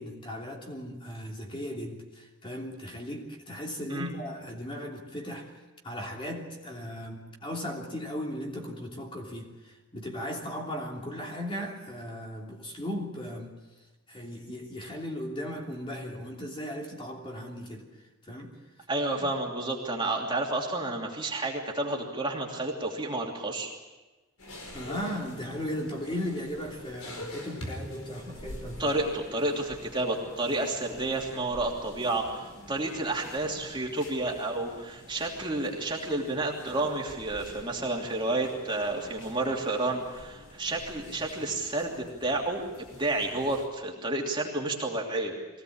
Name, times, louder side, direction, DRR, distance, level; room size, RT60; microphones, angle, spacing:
voice 1, 0.0-5.6 5.8-13.5 14.1-17.8 18.3-18.5 19.2-19.3 24.7-28.9, equal, 25° left, -1 dB, 3.1 m, -37 dB
voice 2, 18.9-23.7 28.8-42.6 43.0-45.3, right 2 dB, 20° right, -1 dB, 3.0 m, -30 dB
sound 1, 24.4-43.7, left 1 dB, 75° left, 4.7 m, -46 dB
23.5 x 17.5 x 8.7 m, 1.1 s
head